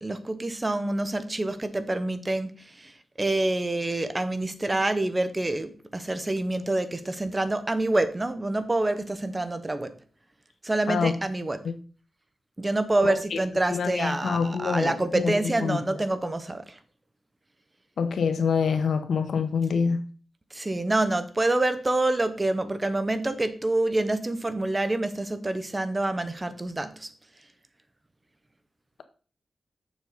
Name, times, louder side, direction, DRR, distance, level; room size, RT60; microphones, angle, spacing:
voice 1, 0.0-2.9 3.2-9.9 10.6-11.6 12.6-16.8 20.5-27.1, right 2 dB, 20° right, 0.7 m, -27 dB
voice 2, 13.0-13.4 13.7-15.8 18.0-20.0, left 5 dB, 90° left, 0.9 m, -26 dB
7.1 x 6.5 x 4.0 m
wide cardioid pair, 130°, 0 cm